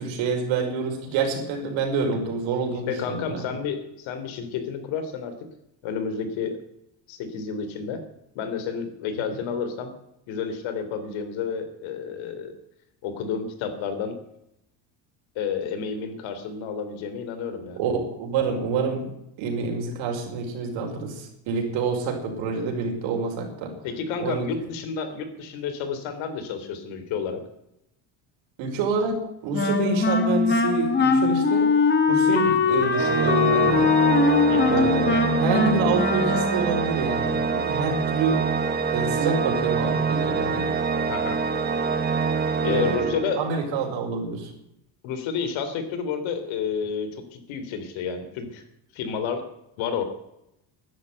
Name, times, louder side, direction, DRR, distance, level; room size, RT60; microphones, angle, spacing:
voice 1, 0.0-3.4 17.8-17.9 18.2-19.1 19.4-23.7 24.2-24.5 28.6-31.7 32.1-33.9 34.7-38.4 38.9-40.7 42.7-43.1 43.4-44.5, right 5 dB, 80° right, 2 dB, 5.2 m, -27 dB
voice 2, 2.9-5.3 5.8-6.6 7.1-8.0 8.4-9.9 10.3-12.5 13.0-14.2 15.4-17.8 23.8-27.4 32.3-32.6 34.5-34.8 41.1-41.4 42.1-42.2 42.6-43.4 45.0-48.6 48.9-49.4 49.8-50.0, left 6 dB, 85° left, 9 dB, 3.3 m, -30 dB
Wind instrument woodwind instrument, 29.5-36.9, left 4 dB, 25° left, 2.0 m, -21 dB
Organ, 32.9-43.8, right 5 dB, 20° right, 1.1 m, -25 dB
13.0 x 10.5 x 9.4 m, 0.82 s
cardioid pair, 175°, 46 cm